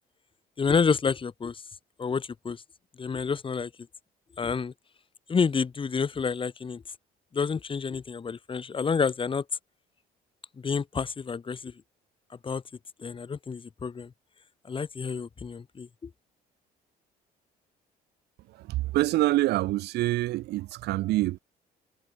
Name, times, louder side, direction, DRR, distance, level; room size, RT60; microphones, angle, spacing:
voice 1, 0.6-1.6 2.0-2.6 3.0-3.7 4.4-4.7 5.3-6.8 7.3-9.4 10.6-11.8 12.4-12.6 13.0-14.1 14.6-16.1, left 5 dB, 30° left, 4.7 m, -29 dB
voice 2, 18.5-21.4, right 17 dB, 80° right, 1.5 m, -26 dB
cardioid pair, 110°, 17 cm